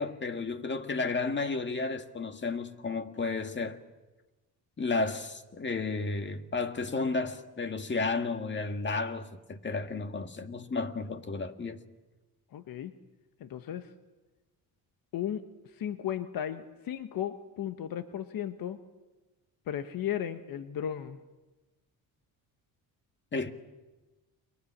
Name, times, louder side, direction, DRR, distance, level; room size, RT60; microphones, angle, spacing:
voice 1, 0.0-3.8 4.8-11.8 23.3-23.5, left 3 dB, 30° left, 2.0 m, -32 dB
voice 2, 12.5-12.9 13.4-13.9 15.1-15.4 15.7-18.8 19.7-21.2, left 10 dB, 65° left, 1.3 m, -35 dB
30.0 x 23.5 x 7.4 m
cardioid pair, 100°, 37 cm